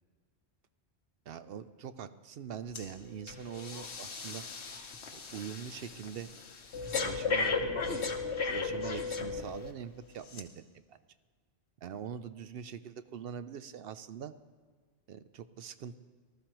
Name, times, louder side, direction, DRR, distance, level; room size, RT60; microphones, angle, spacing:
voice 1, 1.3-4.4 5.1-6.3 7.0-11.0 11.8-14.3 15.1-16.0, right 8 dB, 65° right, 12 dB, 0.7 m, -43 dB
Breathing, 2.7-2.9 3.3-9.7 10.3-10.4, left 4 dB, 80° left, 1.3 m, -35 dB
19.0 x 13.0 x 3.0 m, 1.5 s
omnidirectional pair, 1.1 m